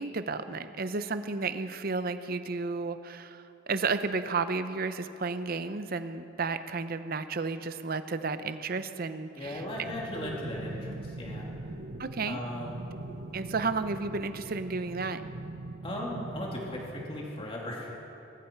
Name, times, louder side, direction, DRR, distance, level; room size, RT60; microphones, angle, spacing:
voice 1, 0.0-9.6 12.0-12.4 13.3-15.2, right 4 dB, 45° right, 11 dB, 0.6 m, -32 dB
voice 2, 9.3-11.5 12.3-12.8 15.8-17.9, left 1 dB, 25° left, -3 dB, 2.6 m, -37 dB
sound 1, 9.4-17.4, right 2 dB, 80° right, 1.1 m, -42 dB
20.5 x 14.5 x 4.5 m, 2.9 s
head